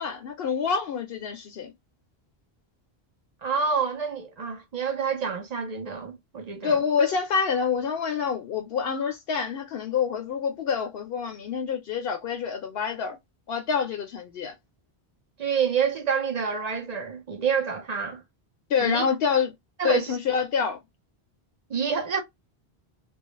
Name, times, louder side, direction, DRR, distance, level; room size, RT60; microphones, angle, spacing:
voice 1, 0.0-1.7 6.6-13.2 13.5-14.5 18.7-19.5 19.8-20.8, left 6 dB, 70° left, 0.8 m, -27 dB
voice 2, 3.4-6.8 15.4-18.2 18.8-19.0 19.8-20.2 21.7-22.2, right 6 dB, 45° right, 0.6 m, -28 dB
2.3 x 2.0 x 2.9 m
omnidirectional pair, 1.1 m